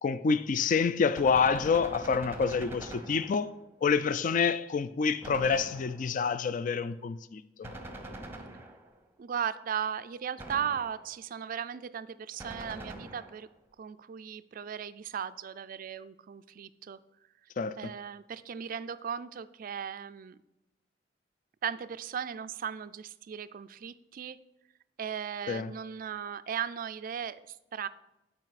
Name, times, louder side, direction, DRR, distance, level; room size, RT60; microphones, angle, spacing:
voice 1, 0.0-3.5 3.8-7.7 17.6-17.7 25.5-25.7, left 5 dB, 45° left, 0.4 m, -27 dB
Gunshot gunfire, 1.1-3.7 5.2-6.3 7.6-9.1 10.4-11.2 12.4-13.5, right 1 dB, 10° right, 0.7 m, -44 dB
voice 2, 9.2-13.5 13.8-17.0 17.8-20.4 21.6-24.4 25.0-27.9, right 8 dB, 50° right, 0.3 m, -37 dB
12.0 x 4.9 x 4.1 m
head